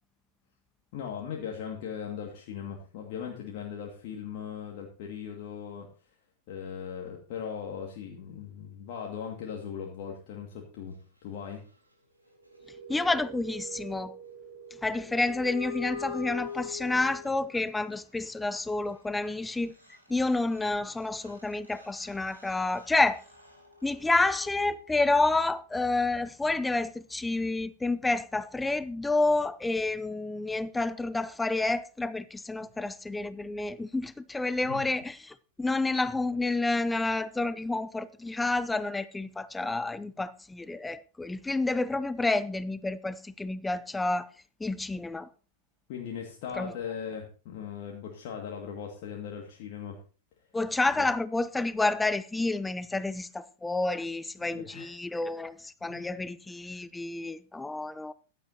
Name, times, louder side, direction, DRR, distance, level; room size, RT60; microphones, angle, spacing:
voice 1, 0.9-5.9 6.5-11.6 34.6-34.8 45.9-50.0 51.0-51.1 54.4-54.9 55.8-56.2, left 7 dB, 50° left, 2.2 m, -39 dB
sound 1, 12.3-17.7 19.5-19.6 19.8-25.3, left 3 dB, 90° right, 4.1 m, -43 dB
voice 2, 12.9-14.1 14.8-19.7 20.1-23.2 23.8-44.3 44.6-45.3 46.6-46.7 50.5-58.1, left 2 dB, 10° left, 0.5 m, -29 dB
15.0 x 12.0 x 2.9 m
figure-of-eight pair, 95°, 0 cm